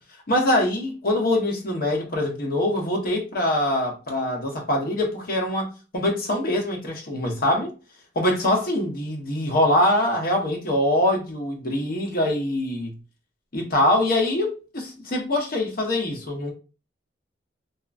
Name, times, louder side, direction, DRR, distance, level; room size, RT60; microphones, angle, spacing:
voice 1, 0.3-7.7 8.1-12.9 13.5-16.5, left 1 dB, 50° left, 0.9 m, -23 dB
2.8 x 2.4 x 2.4 m
head